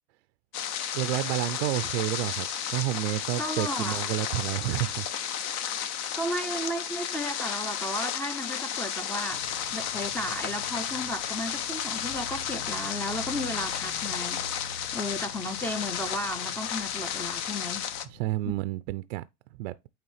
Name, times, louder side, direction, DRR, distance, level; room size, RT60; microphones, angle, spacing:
sound 1, 0.5-18.1, left 9 dB, 45° left, 0.9 m, -33 dB
voice 1, 0.9-5.1 18.1-19.2 19.6-19.7, right 17 dB, 65° right, 0.5 m, -30 dB
voice 2, 3.4-4.0 6.2-17.9 18.5-18.6, equal, 5° left, 0.6 m, -34 dB
sound 2, 9.3-18.5, left 2 dB, 90° left, 1.0 m, -47 dB
8.8 x 3.5 x 3.2 m
hypercardioid pair, 100°, 36 cm